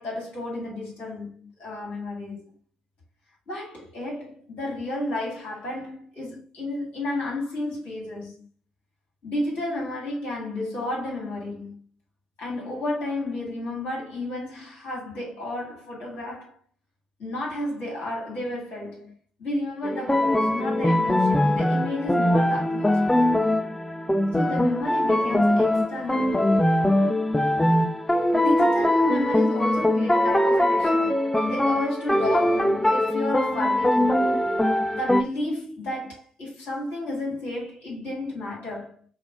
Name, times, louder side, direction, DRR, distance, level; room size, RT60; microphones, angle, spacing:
voice 1, 0.0-2.5 3.5-8.5 9.2-11.8 12.4-16.6 17.2-19.1 19.4-23.4 24.3-26.7 28.3-34.2 34.9-39.0, left 1 dB, 60° left, 2.4 m, -32 dB
sound 1, 19.8-35.2, left 1 dB, 10° left, 0.5 m, -22 dB
5.6 x 2.0 x 4.4 m
figure-of-eight pair, 40°, 3 cm